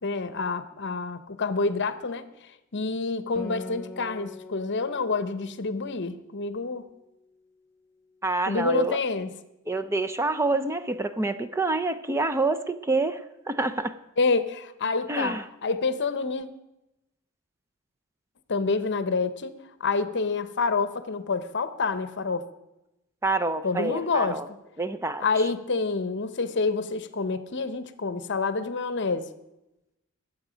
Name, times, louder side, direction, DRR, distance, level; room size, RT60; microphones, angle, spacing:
voice 1, 0.0-2.3 2.7-6.9 8.4-9.4 14.2-16.5 18.5-19.5 19.8-22.4 23.6-24.4 25.2-29.3, left 4 dB, 55° left, 12 dB, 0.9 m, -28 dB
Acoustic guitar, 3.4-7.1, left 2 dB, 5° left, 1.2 m, -43 dB
voice 2, 8.2-9.0 9.7-13.9 15.1-15.4 23.2-24.5 24.8-25.2, right 2 dB, 10° right, 9 dB, 0.5 m, -27 dB
21.0 x 7.9 x 5.1 m, 0.93 s
head